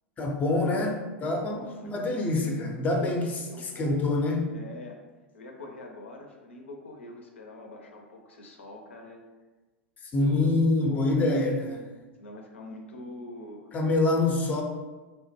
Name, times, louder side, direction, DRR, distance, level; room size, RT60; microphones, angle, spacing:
voice 1, 0.2-4.5 10.0-11.9 13.7-14.6, left 2 dB, 25° left, 2 dB, 0.5 m, -26 dB
voice 2, 1.4-2.2 3.1-4.1 4.5-5.0 5.3-9.2 10.2-10.5 10.8-11.3 12.2-13.7, left 2 dB, 75° left, 1 dB, 0.4 m, -44 dB
2.9 x 2.1 x 2.9 m, 1.2 s
figure-of-eight pair, 90°, 7 cm